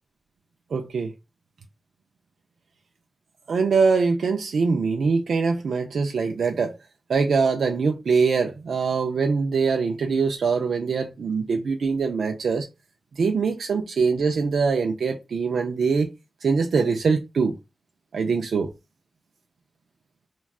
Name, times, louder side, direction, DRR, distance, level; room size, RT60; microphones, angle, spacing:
voice 1, 0.7-1.1 3.5-6.7 7.1-12.7 13.2-16.1 16.4-17.5 18.1-18.7, right 5 dB, 75° right, 0.3 m, -23 dB
2.3 x 2.2 x 3.5 m
wide cardioid pair, 175°, 0 cm